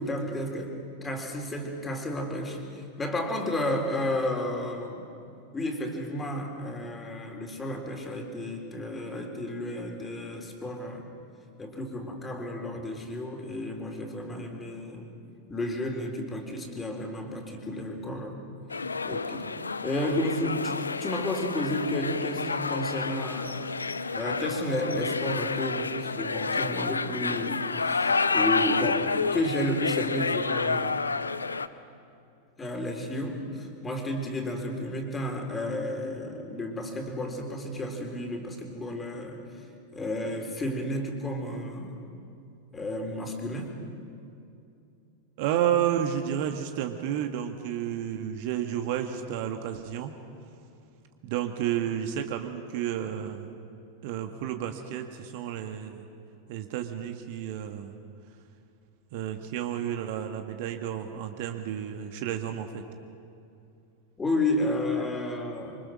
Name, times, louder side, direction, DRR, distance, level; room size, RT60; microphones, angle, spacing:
voice 1, 0.0-5.1 5.5-11.1 11.6-15.1 15.5-18.4 19.0-19.5 19.8-23.7 24.1-29.1 29.3-31.0 32.6-39.6 39.9-42.0 42.7-43.7 64.2-65.8, left 1 dB, 15° left, 2 dB, 3.9 m, -32 dB
sound 1, 18.7-31.7, left 4 dB, 80° left, 0.7 m, -29 dB
voice 2, 45.4-50.1 51.2-53.5 54.0-56.1 56.5-57.9 59.1-62.8, right 10 dB, 50° right, 6 dB, 1.6 m, -31 dB
26.0 x 25.0 x 6.3 m, 2.6 s
figure-of-eight pair, 90°, 0 cm